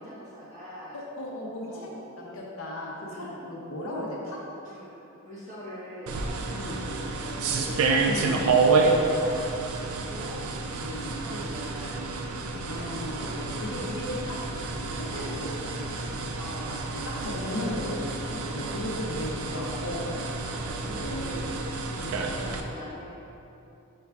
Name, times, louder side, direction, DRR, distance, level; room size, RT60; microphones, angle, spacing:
voice 1, 0.0-1.0 1.7-2.1 3.1-3.5 4.6-10.4 10.7-12.2 12.5-13.8 16.3-17.1 18.4-18.7 20.5-21.7 22.0-23.2, equal, 35° right, -9 dB, 1.0 m, -43 dB
voice 2, 0.9-1.9 2.2-4.4 6.5-6.8 8.0-8.6 10.8-11.1 12.7-16.1 16.9-20.2 21.0-21.5 21.9-22.2, left 1 dB, 65° left, -3 dB, 0.7 m, -36 dB
sound 1, 6.1-22.6, right 3 dB, 75° right, 0.3 m, -29 dB
5.4 x 3.3 x 2.4 m, 2.8 s
head